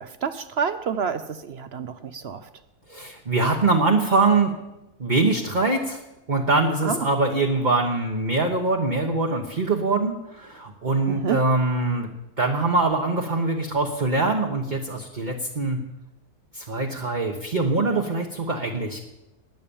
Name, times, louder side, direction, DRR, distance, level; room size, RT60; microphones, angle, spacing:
voice 1, 0.0-2.5 6.8-7.1 11.1-11.4, right 6 dB, 60° right, 12 dB, 0.7 m, -28 dB
voice 2, 2.9-4.5 5.0-6.0 6.3-12.1 12.4-15.8 16.5-19.0, right 3 dB, 30° right, 1 dB, 1.2 m, -23 dB
19.0 x 8.7 x 7.1 m, 0.95 s
omnidirectional pair, 1.7 m